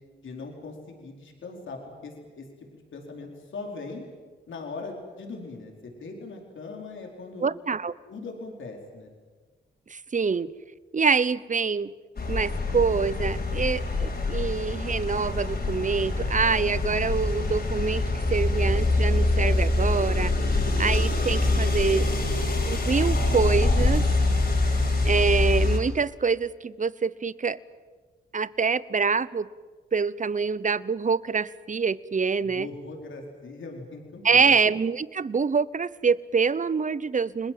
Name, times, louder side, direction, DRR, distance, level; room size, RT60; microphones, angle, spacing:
voice 1, 0.2-2.5 2.7-4.1 4.5-7.5 8.1-9.1 32.4-34.6, left 3 dB, 80° left, 1 dB, 4.7 m, -40 dB
voice 2, 7.4-7.9 9.9-10.5 10.9-11.9 12.3-18.0 18.3-20.3 20.8-22.1 22.7-24.0 25.0-27.6 28.3-29.5 29.9-32.7 34.2-37.5, right 5 dB, 40° right, 18 dB, 0.9 m, -25 dB
sound 1, 12.2-25.8, left 2 dB, 55° left, 6.1 m, -24 dB
30.0 x 20.5 x 7.8 m, 1.4 s
cardioid pair, 60°, 20 cm